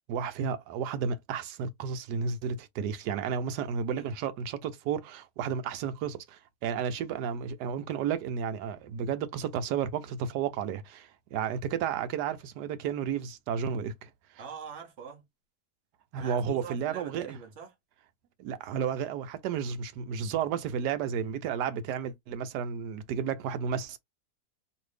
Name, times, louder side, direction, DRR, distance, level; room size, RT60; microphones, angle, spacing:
voice 1, 0.1-14.1 16.1-17.4 18.4-24.0, right 7 dB, 85° right, 1.2 m, -32 dB
voice 2, 14.4-15.3 16.1-17.7, right 6 dB, 50° right, 1.1 m, -44 dB
3.0 x 2.6 x 3.2 m
omnidirectional pair, 1.7 m